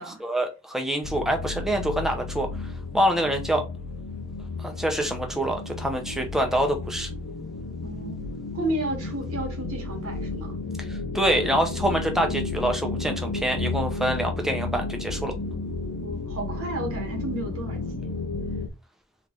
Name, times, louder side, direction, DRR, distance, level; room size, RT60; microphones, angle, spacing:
voice 1, 0.2-2.5 2.9-3.6 4.6-7.1 10.9-15.3, right 1 dB, ahead, 0.7 m, -26 dB
sound 1, 1.0-18.7, left 3 dB, 85° left, 0.6 m, -33 dB
voice 2, 7.8-8.3 8.5-10.5 16.0-18.1, right 2 dB, 75° right, 1.6 m, -32 dB
3.4 x 3.1 x 3.7 m
head